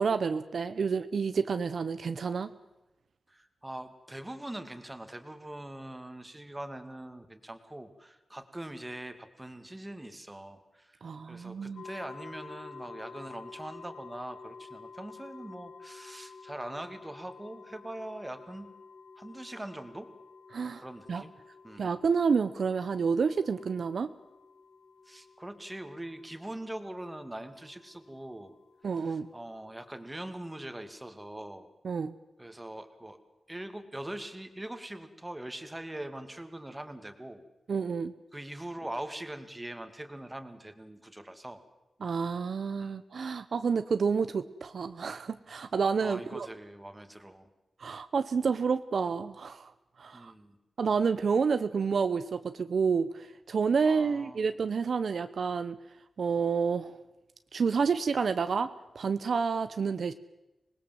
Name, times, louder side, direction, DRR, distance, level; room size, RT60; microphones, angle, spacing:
voice 1, 0.0-2.5 11.0-11.8 20.5-20.8 21.1-21.2 21.8-24.1 28.8-29.3 31.8-32.1 37.7-38.1 42.0-46.5 47.8-49.7 50.0-50.3 50.8-55.8 56.2-57.0 57.5-58.7 58.9-60.1, right 5 dB, 65° right, 11 dB, 0.8 m, -29 dB
voice 2, 3.3-18.7 19.2-20.1 20.8-21.3 21.6-21.9 25.1-28.5 28.9-31.7 32.4-33.2 33.5-37.4 38.3-41.6 42.8-43.0 46.0-47.5 50.1-50.6 53.8-54.5, right 1 dB, 10° right, 8 dB, 2.1 m, -42 dB
sound 1, 11.8-31.4, left 4 dB, 90° left, 1.6 m, -51 dB
26.0 x 20.0 x 7.6 m, 0.97 s
wide cardioid pair, 115°, 0 cm